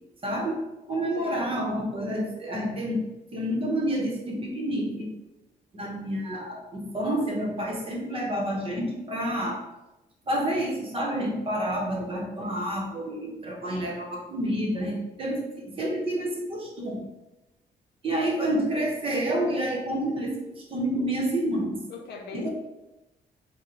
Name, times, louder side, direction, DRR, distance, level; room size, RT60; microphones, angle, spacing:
voice 1, 0.2-0.6 0.9-5.1 5.7-9.6 10.3-17.1 18.0-21.8 22.3-22.5, right 1 dB, 35° right, 0 dB, 0.7 m, -29 dB
voice 2, 1.1-1.6 21.9-22.5, left 4 dB, 80° left, 2 dB, 0.7 m, -39 dB
4.3 x 2.1 x 3.8 m, 0.99 s
cardioid pair, 170°, 17 cm